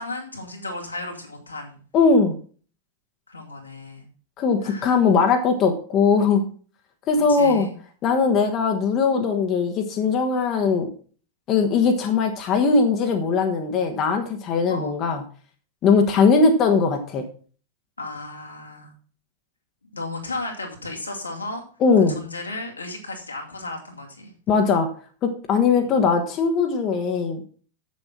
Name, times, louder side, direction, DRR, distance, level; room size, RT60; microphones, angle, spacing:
voice 1, 0.0-1.8 3.3-4.1 4.6-5.0 7.3-7.7 14.7-15.1 18.0-18.9 19.9-21.6 22.1-24.3 25.8-25.9, left 2 dB, 80° left, 0 dB, 2.5 m, -34 dB
voice 2, 1.9-2.4 4.4-6.4 7.1-7.7 8.0-10.9 11.5-15.2 15.8-17.3 21.8-22.2 24.5-24.9 25.2-27.4, left 5 dB, 35° left, 5 dB, 1.4 m, -20 dB
7.8 x 7.4 x 6.0 m, 0.42 s
figure-of-eight pair, 90°, 0 cm